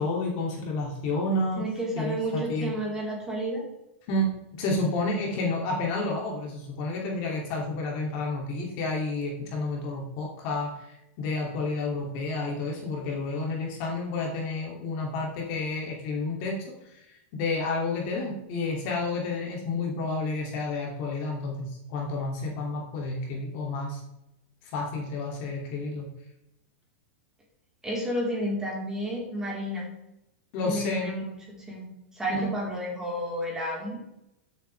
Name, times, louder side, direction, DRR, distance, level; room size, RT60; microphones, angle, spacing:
voice 1, 0.0-1.6 2.0-2.7 4.1-4.3 4.6-16.7 17.3-24.0 24.7-26.0 30.5-31.2 32.4-32.5, left 2 dB, 45° left, -1 dB, 2.6 m, -30 dB
voice 2, 1.6-3.6 27.8-29.9 30.7-34.0, equal, 10° right, -4 dB, 3.9 m, -31 dB
13.5 x 7.9 x 3.4 m, 0.86 s
supercardioid pair, 150°, 7 cm